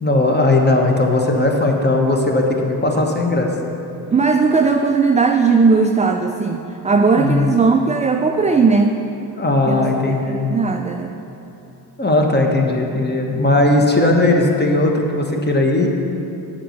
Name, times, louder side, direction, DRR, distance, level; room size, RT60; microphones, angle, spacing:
voice 1, 0.0-3.5 7.1-7.6 9.4-10.5 12.0-15.9, left 2 dB, 20° left, 1 dB, 1.4 m, -17 dB
voice 2, 4.1-9.0 9.7-11.1, right 4 dB, 15° right, 4 dB, 0.4 m, -17 dB
7.6 x 5.8 x 6.6 m, 2.8 s
hypercardioid pair, 45°, 49 cm